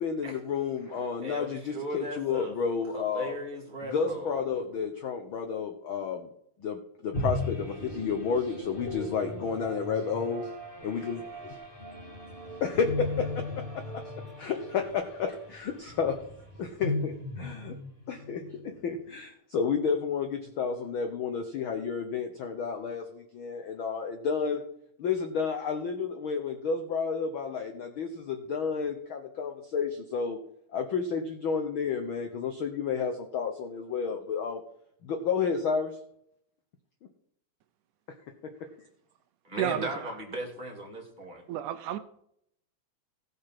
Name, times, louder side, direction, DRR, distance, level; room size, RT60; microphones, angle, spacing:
voice 1, 0.0-3.4 3.8-6.3 6.6-10.4 10.8-11.5 12.6-14.0 14.4-16.2 16.6-17.8 18.1-24.6 25.0-30.4 30.7-34.6 35.0-35.9, left 6 dB, 85° left, 1.1 m, -31 dB
voice 2, 1.2-2.5 2.9-4.6 39.4-41.4, right 1 dB, 15° right, 2.1 m, -37 dB
sound 1, 7.1-18.7, left 1 dB, 20° left, 1.5 m, -37 dB
voice 3, 39.6-40.2 41.5-42.0, right 11 dB, 80° right, 2.1 m, -32 dB
16.0 x 5.5 x 5.9 m
omnidirectional pair, 3.6 m